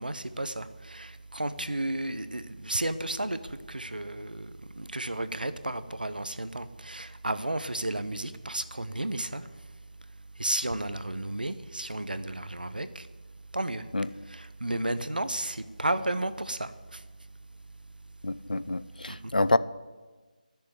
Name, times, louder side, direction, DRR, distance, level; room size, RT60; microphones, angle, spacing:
voice 1, 0.0-3.4 3.7-4.5 4.8-9.4 10.4-13.0 13.5-13.8 14.3-16.7, right 1 dB, 85° right, 12 dB, 0.9 m, -32 dB
voice 2, 18.2-19.6, left 2 dB, 75° left, 16 dB, 0.6 m, -27 dB
11.5 x 6.8 x 9.5 m, 1.4 s
figure-of-eight pair, 160°, 5 cm